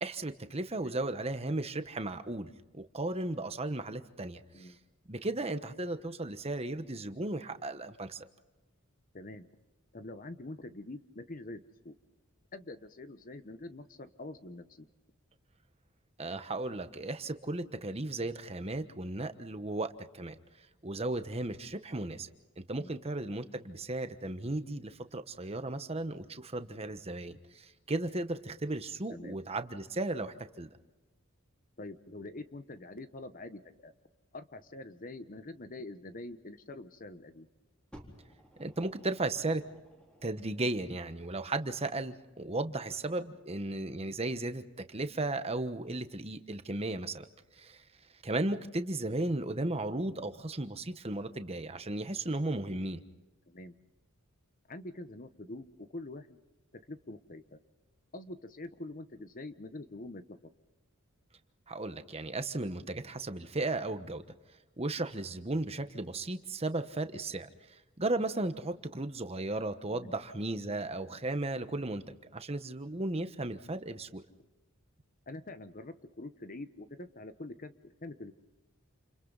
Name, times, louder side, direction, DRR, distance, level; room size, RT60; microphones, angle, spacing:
voice 1, 0.0-4.7 5.1-8.2 16.2-20.3 20.8-22.3 22.7-30.7 38.6-39.6 40.2-47.3 47.6-47.8 48.2-53.0 61.7-64.2 64.8-67.5 68.0-72.0 72.3-74.2, right 2 dB, 30° right, 9 dB, 1.2 m, -35 dB
voice 2, 9.1-9.5 9.9-11.6 11.8-12.0 12.5-14.9 22.8-22.9 29.1-29.4 31.8-33.9 34.3-37.5 50.1-50.3 53.5-53.7 54.7-56.4 56.9-57.6 58.1-60.4 69.9-70.1 75.3-78.3, left 2 dB, 40° left, 10 dB, 1.0 m, -45 dB
Fire, 37.9-40.7 41.6-41.7, equal, 5° left, 4.1 m, -56 dB
29.5 x 28.5 x 4.1 m, 1.1 s
head